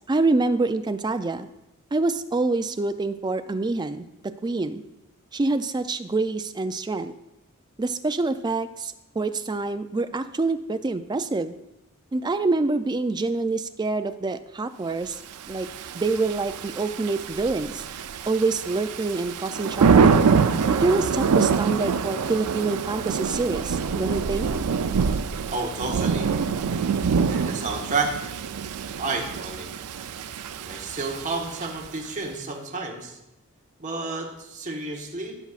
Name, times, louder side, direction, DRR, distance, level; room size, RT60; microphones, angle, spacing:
voice 1, 0.1-1.5 1.9-4.0 4.4-4.8 5.3-7.1 7.8-11.6 12.1-15.1 15.5-15.7 15.9-17.8 18.3-20.2 20.8-24.5, right 3 dB, 20° right, 9 dB, 0.4 m, -26 dB
Thunder / Rain, 15.5-32.1, right 5 dB, 90° right, 0.4 m, -25 dB
voice 2, 25.5-26.3 27.3-28.1 29.0-29.7 30.6-33.2 33.8-35.3, right 3 dB, 35° right, 0 dB, 1.3 m, -30 dB
16.0 x 6.1 x 2.5 m, 0.92 s
head